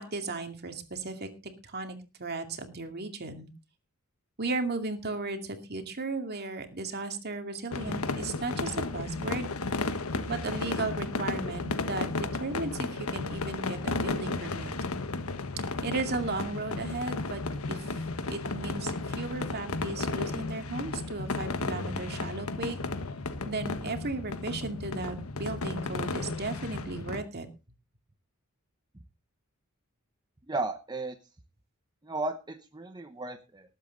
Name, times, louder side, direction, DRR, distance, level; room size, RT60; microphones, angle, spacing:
voice 1, 0.0-3.5 4.4-9.5 10.3-14.7 15.8-17.4 17.7-18.0 18.3-22.8 23.5-27.5, right 3 dB, 50° right, 6 dB, 2.4 m, -35 dB
sound 1, 7.7-27.2, left 3 dB, 85° left, 1.4 m, -34 dB
voice 2, 30.5-31.1 32.0-33.6, right 2 dB, 20° right, 7 dB, 0.9 m, -34 dB
19.5 x 8.3 x 4.0 m, 0.30 s
head